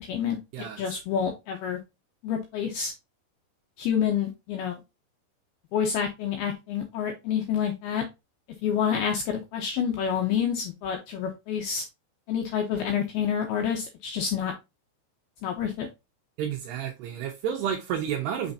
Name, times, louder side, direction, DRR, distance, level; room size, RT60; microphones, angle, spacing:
voice 1, 0.0-0.4 0.8-1.8 2.2-2.9 3.8-4.8 5.7-8.0 8.6-11.8 12.3-14.5 15.4-15.9, left 8 dB, 75° left, 2.3 m, -28 dB
voice 2, 16.4-18.5, right 9 dB, 75° right, 2.6 m, -30 dB
6.5 x 5.7 x 2.7 m
omnidirectional pair, 5.5 m